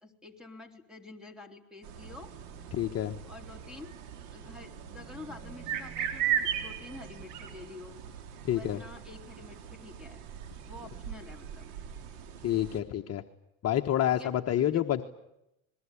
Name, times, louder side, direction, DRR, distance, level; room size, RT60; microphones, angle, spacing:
voice 1, 0.0-2.3 3.3-3.9 4.3-8.0 8.5-10.2 10.7-11.7 14.1-14.9, left 3 dB, ahead, 6 dB, 3.8 m, -48 dB
sound 1, 1.8-12.8, right 9 dB, 85° right, 4.0 m, -38 dB
voice 2, 2.7-3.2 8.4-8.8 12.4-13.2 13.6-15.0, left 11 dB, 35° left, 3 dB, 1.3 m, -28 dB
27.5 x 21.5 x 8.5 m, 0.85 s
supercardioid pair, 125°, 43 cm